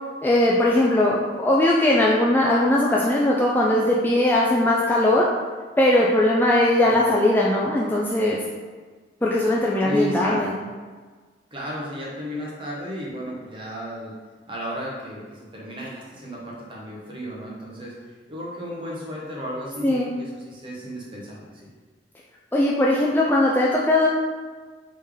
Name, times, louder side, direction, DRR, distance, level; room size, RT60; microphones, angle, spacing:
voice 1, 0.2-5.3 5.8-8.4 9.2-10.6 19.8-20.1 22.5-24.1, left 1 dB, 10° left, -4 dB, 0.3 m, -19 dB
voice 2, 9.8-10.4 11.5-14.1 14.5-18.0 18.3-21.5, equal, 30° right, -5 dB, 1.0 m, -33 dB
4.1 x 3.3 x 3.5 m, 1.4 s
head